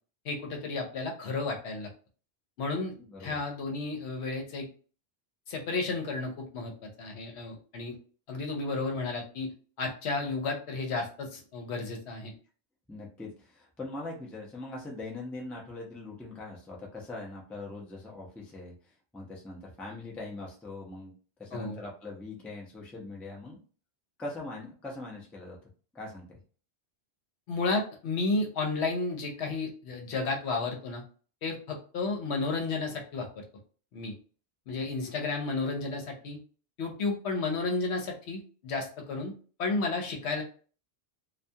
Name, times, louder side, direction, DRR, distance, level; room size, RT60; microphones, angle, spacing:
voice 1, 0.2-1.9 2.6-2.9 3.2-4.7 5.5-6.7 7.0-7.9 8.3-9.5 9.8-12.3 21.5-21.8 27.5-31.0 31.4-33.4 33.9-34.1 34.7-36.4 36.8-39.3 39.6-40.4, left 3 dB, 75° left, 2 dB, 0.9 m, -32 dB
voice 2, 12.9-18.7 19.1-21.1 21.4-23.6 24.2-25.6 25.9-26.4, left 2 dB, ahead, -2 dB, 0.3 m, -41 dB
2.3 x 2.3 x 2.7 m, 0.40 s
omnidirectional pair, 1.2 m